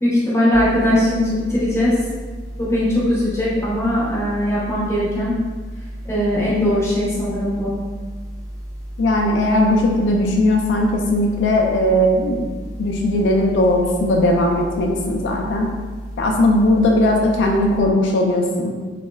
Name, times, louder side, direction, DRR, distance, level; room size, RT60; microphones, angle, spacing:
voice 1, 0.0-2.0 2.6-5.4 6.0-7.7, left 1 dB, 15° left, -9 dB, 0.7 m, -20 dB
sound 1, 0.5-17.8, equal, 20° right, 0.7 m, -34 dB
voice 2, 9.0-12.5 12.8-15.7 16.2-18.7, left 1 dB, 80° left, 1 dB, 0.3 m, -18 dB
3.2 x 2.1 x 2.2 m, 1.4 s
head